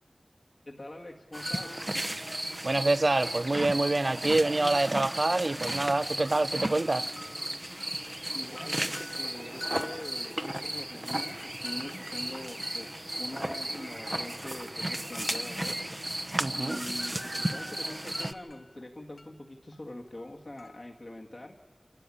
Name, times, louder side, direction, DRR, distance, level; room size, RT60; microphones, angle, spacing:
voice 1, 0.7-1.9 8.3-15.9 16.5-21.6, left 1 dB, 60° left, 1.8 m, -43 dB
sound 1, 1.3-2.1 2.4-2.6 2.9-4.8 5.1-5.9 6.4-14.5 14.7-15.6 15.9-16.6 16.9-21.0, left 2 dB, 90° left, 1.5 m, -50 dB
sound 2, 1.3-18.3, right 1 dB, 25° right, 0.9 m, -34 dB
voice 2, 2.6-7.1 16.4-16.8, right 2 dB, 60° right, 0.6 m, -26 dB
sound 3, 6.3-7.4 10.3-11.7 11.9-12.3 12.6-12.7, left 1 dB, 35° left, 1.8 m, -54 dB
27.5 x 12.5 x 9.9 m
wide cardioid pair, 55°, 0 cm